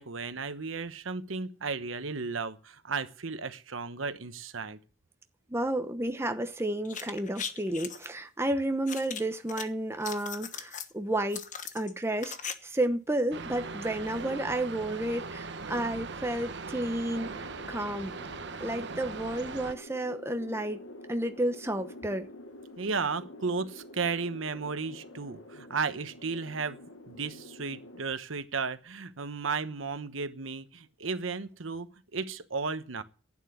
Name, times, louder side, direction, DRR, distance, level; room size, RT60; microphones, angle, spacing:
voice 1, 0.0-4.8 22.8-33.0, right 4 dB, 85° right, 1.1 m, -34 dB
voice 2, 5.5-11.4 11.7-18.2 18.6-20.8 21.1-22.3, right 1 dB, 15° right, 1.0 m, -31 dB
sound 1, 6.8-8.1 8.9-9.6 9.9-10.9 11.3-12.5 12.8-12.9, left 7 dB, 40° left, 1.2 m, -39 dB
sound 2, 13.3-19.7, right 4 dB, 60° right, 1.1 m, -40 dB
sound 3, 17.0-28.0, left 1 dB, 90° left, 1.6 m, -48 dB
11.5 x 9.2 x 9.6 m
head